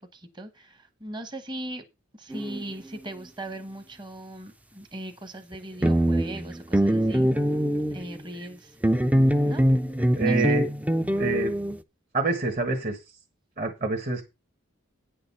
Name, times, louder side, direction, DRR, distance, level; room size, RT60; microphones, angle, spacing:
voice 1, 0.1-1.8 2.1-7.3 7.9-8.8 9.4-9.6 10.2-10.6, right 1 dB, 20° right, 1.1 m, -39 dB
sound 1, 2.3-2.6 5.5-5.6 5.8-8.2 8.8-11.8, equal, 5° right, 0.4 m, -23 dB
voice 2, 10.1-10.7 11.2-11.5 12.1-13.0 13.6-14.2, right 3 dB, 40° right, 1.5 m, -26 dB
9.6 x 6.6 x 5.5 m
head